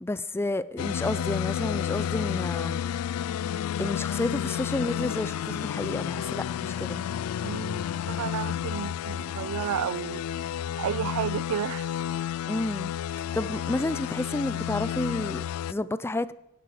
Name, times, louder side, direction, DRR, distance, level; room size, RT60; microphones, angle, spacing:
voice 1, 0.0-2.8 3.8-7.0 12.5-12.9 13.2-16.3, left 2 dB, 10° left, 0.4 m, -31 dB
sound 1, 0.8-15.7, left 9 dB, 85° left, 0.3 m, -31 dB
voice 2, 7.4-10.2 10.8-11.9, right 9 dB, 85° right, 0.3 m, -32 dB
11.0 x 10.0 x 4.9 m
head